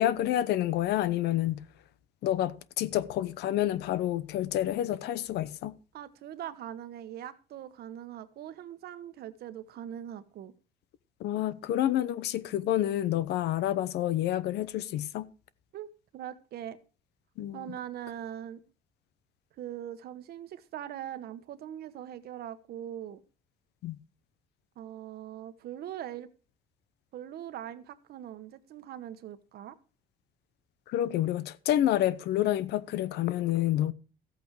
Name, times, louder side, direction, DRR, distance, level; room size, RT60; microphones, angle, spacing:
voice 1, 0.0-1.6 2.2-5.7 11.2-15.3 17.4-17.8 23.8-24.0 30.9-33.9, left 12 dB, 80° left, 0.8 m, -28 dB
voice 2, 5.9-10.5 15.7-15.9 16.1-16.8 17.5-18.6 19.6-23.2 24.8-26.3 27.1-29.8, right 11 dB, 70° right, 1.1 m, -41 dB
14.5 x 8.3 x 4.7 m
cardioid pair, 110°, 17 cm